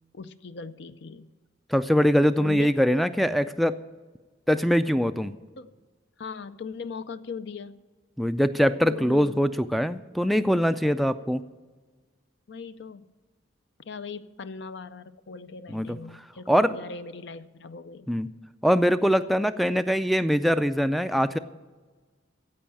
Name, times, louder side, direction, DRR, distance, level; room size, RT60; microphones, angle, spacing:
voice 1, 0.1-1.3 2.4-2.7 5.6-5.7 6.2-7.9 8.8-9.4 12.5-13.1 13.9-18.1, left 5 dB, 60° left, 13 dB, 0.5 m, -39 dB
voice 2, 1.7-3.7 4.5-5.3 8.2-11.4 15.7-16.0 16.5-16.8 18.1-18.3 18.6-21.4, equal, ahead, 12 dB, 0.3 m, -22 dB
15.5 x 5.5 x 8.9 m, 1.3 s
head